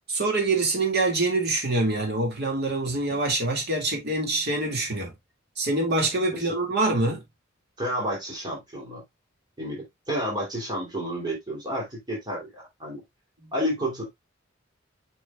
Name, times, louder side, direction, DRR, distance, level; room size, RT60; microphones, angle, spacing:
voice 1, 0.1-5.1 5.6-7.2 13.4-13.5, right 2 dB, 55° right, 2.2 m, -25 dB
voice 2, 7.8-9.0 9.6-13.0 13.5-14.1, equal, 20° right, 3.0 m, -31 dB
6.7 x 6.0 x 2.3 m
head